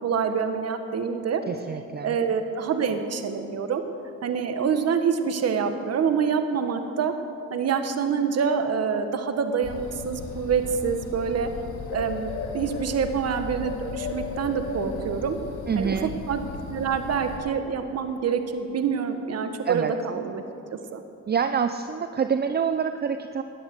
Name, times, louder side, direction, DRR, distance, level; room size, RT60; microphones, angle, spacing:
voice 1, 0.0-1.4 2.0-3.8 4.2-7.1 7.5-11.5 11.9-15.4 15.8-16.0 16.3-16.4 16.7-20.4 20.7-21.0, right 6 dB, 55° right, 7 dB, 1.4 m, -26 dB
voice 2, 1.5-2.2 15.7-16.1 19.6-19.9 21.3-23.4, right 7 dB, 35° right, 9 dB, 0.6 m, -26 dB
Bird, 9.6-17.4, left 4 dB, 80° left, 2.9 m, -36 dB
17.0 x 10.0 x 8.1 m, 2.7 s
cardioid pair, 90°, 30 cm